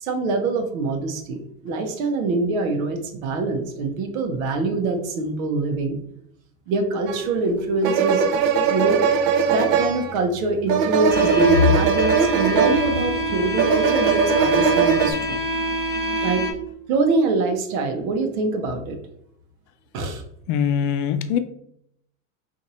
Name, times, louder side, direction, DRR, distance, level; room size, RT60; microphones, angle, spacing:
voice 1, 0.0-6.0 6.7-8.3 8.7-15.4 16.2-16.5 16.9-19.0 19.9-20.2, right 2 dB, 85° right, 4 dB, 0.8 m, -24 dB
sound 1, 7.1-7.2 7.8-15.1, right 6 dB, 55° right, 0.5 m, -20 dB
sound 2, 11.1-16.5, right 1 dB, 25° right, 0.8 m, -25 dB
voice 2, 20.5-21.4, left 8 dB, 50° left, 11 dB, 0.5 m, -22 dB
2.6 x 2.6 x 4.1 m, 0.72 s
supercardioid pair, 110°, 40 cm